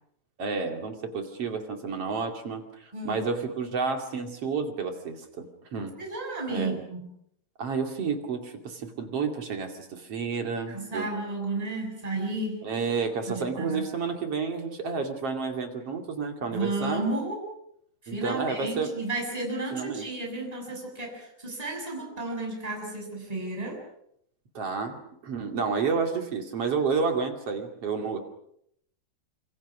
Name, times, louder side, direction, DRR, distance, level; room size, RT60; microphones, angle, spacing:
voice 1, 0.4-6.0 6.5-6.8 7.6-11.1 12.6-17.0 18.1-18.9 19.7-20.1 24.5-28.2, right 5 dB, 40° right, 4 dB, 2.9 m, -30 dB
voice 2, 2.9-3.2 6.0-7.1 10.7-12.6 13.3-13.9 16.4-17.4 18.0-23.8, right 2 dB, 10° right, 0 dB, 6.7 m, -33 dB
26.5 x 26.5 x 6.2 m, 0.72 s
omnidirectional pair, 4.9 m